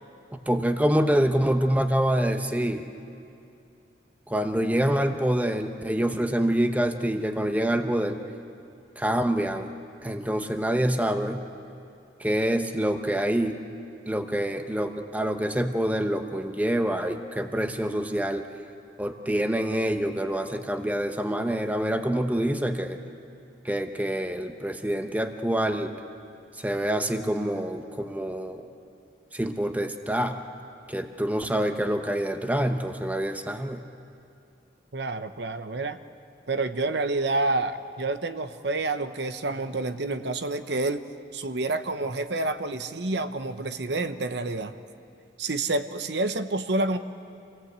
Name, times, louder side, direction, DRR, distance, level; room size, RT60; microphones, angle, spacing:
voice 1, 0.3-2.8 4.3-8.2 9.0-9.7 10.0-11.4 12.2-13.6 14.1-18.5 19.0-23.0 23.6-25.9 26.6-28.7 29.3-30.4 30.9-33.8, right 1 dB, 10° right, 6 dB, 0.9 m, -26 dB
voice 2, 34.9-36.0 36.5-41.0 41.3-44.7 45.4-47.0, right 2 dB, 65° right, 10 dB, 0.9 m, -28 dB
27.5 x 17.5 x 8.1 m, 2.6 s
head